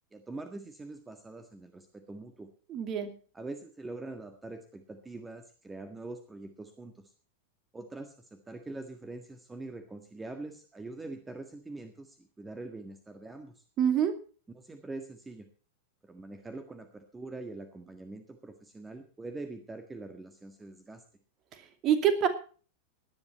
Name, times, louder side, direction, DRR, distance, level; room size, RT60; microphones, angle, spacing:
voice 1, 0.1-2.5 3.3-6.9 7.7-8.1 8.5-13.6 14.6-15.5 16.0-21.0, right 2 dB, 10° right, 7 dB, 1.7 m, -43 dB
voice 2, 2.7-3.1 13.8-14.1 21.8-22.3, right 8 dB, 35° right, 8 dB, 2.5 m, -25 dB
18.0 x 10.5 x 4.3 m, 0.39 s
figure-of-eight pair, 90°, 0 cm